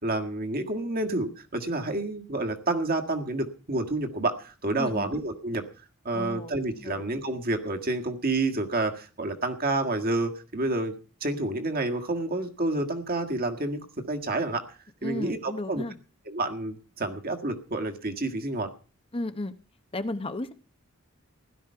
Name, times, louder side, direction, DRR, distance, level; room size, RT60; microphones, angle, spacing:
voice 1, 0.0-5.6 6.0-10.9 11.2-15.8 16.3-18.7, right 2 dB, 45° right, 5 dB, 1.8 m, -29 dB
voice 2, 4.8-5.1 6.1-7.1 15.0-16.0 19.1-19.5 19.9-20.5, left 2 dB, 25° left, 10 dB, 0.8 m, -34 dB
16.0 x 12.0 x 5.7 m, 0.37 s
head